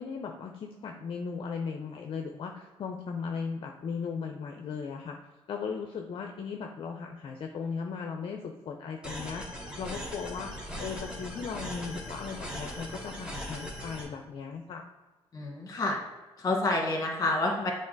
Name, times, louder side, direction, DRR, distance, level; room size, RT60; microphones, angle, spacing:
voice 1, 0.0-5.2 5.5-9.4 9.8-10.5 10.8-14.8, left 5 dB, 55° left, 3 dB, 0.6 m, -37 dB
sound 1, 9.0-14.0, equal, 10° right, 1.6 m, -39 dB
voice 2, 15.3-16.0 16.4-17.7, left 2 dB, 35° left, 0 dB, 1.7 m, -28 dB
7.5 x 3.9 x 4.0 m, 1.2 s
cardioid pair, 110°, 10 cm